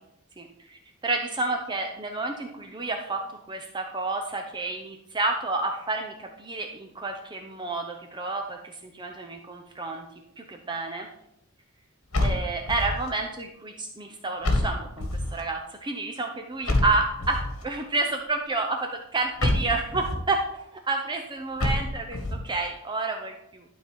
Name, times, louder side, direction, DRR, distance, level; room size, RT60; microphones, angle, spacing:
voice 1, 0.4-10.1 10.4-11.1 12.2-23.6, right 3 dB, 20° right, 3 dB, 0.7 m, -30 dB
sound 1, 12.1-13.1 14.4-15.4 16.7-17.6 19.4-20.3 21.6-22.4, left 1 dB, 70° left, 1.7 m, -27 dB
12.0 x 4.0 x 6.8 m, 0.82 s
head